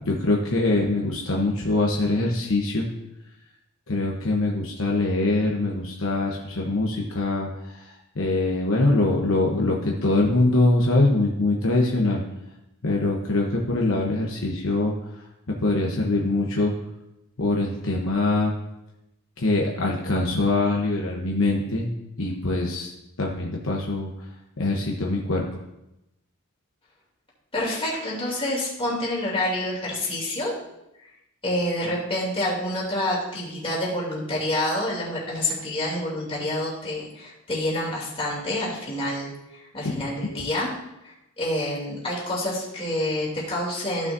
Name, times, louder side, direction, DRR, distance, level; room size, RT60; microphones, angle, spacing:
voice 1, 0.0-2.9 3.9-6.4 6.6-7.5 8.2-9.8 10.0-12.2 12.8-14.9 15.6-16.7 17.4-18.5 19.4-21.9 22.2-22.9 23.2-24.1 24.6-25.4, left 2 dB, 65° left, -1 dB, 1.0 m, -23 dB
voice 2, 27.5-30.5 31.4-40.7 41.0-44.1, left 1 dB, 25° left, -5 dB, 2.9 m, -28 dB
14.5 x 6.1 x 2.7 m, 0.91 s
head